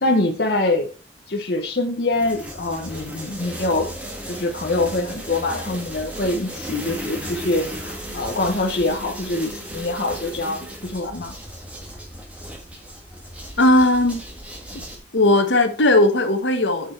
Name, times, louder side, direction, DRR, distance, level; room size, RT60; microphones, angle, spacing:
voice 1, 0.0-0.9 1.3-3.9 4.3-11.3, left 2 dB, 55° left, 0.8 m, -24 dB
sound 1, 2.1-15.0, equal, 5° right, 1.5 m, -35 dB
voice 2, 13.6-14.2 15.1-16.9, left 1 dB, 80° left, 1.2 m, -17 dB
6.8 x 6.5 x 4.4 m
head